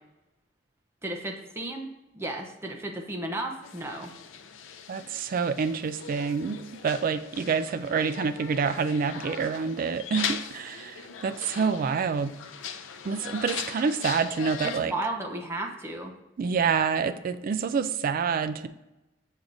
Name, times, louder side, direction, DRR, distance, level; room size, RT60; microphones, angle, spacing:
voice 1, 1.0-1.9 2.1-4.1 14.6-16.1, right 2 dB, 15° right, 2 dB, 0.7 m, -34 dB
sound 1, 3.6-14.8, left 7 dB, 90° left, 0.5 m, -39 dB
voice 2, 4.9-12.3 13.0-14.9 16.4-18.7, right 5 dB, 45° right, 11 dB, 0.3 m, -27 dB
7.0 x 6.4 x 2.6 m, 0.97 s
head